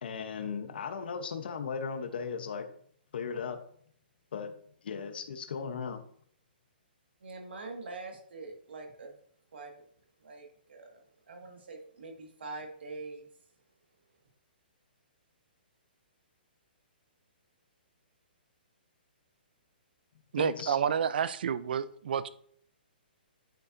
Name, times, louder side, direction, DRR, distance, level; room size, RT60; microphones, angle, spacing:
voice 1, 0.0-2.7 3.1-3.6 4.3-4.5 4.8-6.0 20.4-20.8, left 6 dB, 65° left, 0.9 m, -36 dB
voice 2, 7.2-9.2 9.5-9.8 10.2-11.0 11.3-13.3, right 3 dB, 85° right, 1.8 m, -44 dB
voice 3, 20.3-22.3, right 7 dB, 65° right, 0.5 m, -29 dB
8.7 x 5.4 x 2.6 m
hypercardioid pair, 160°, 6 cm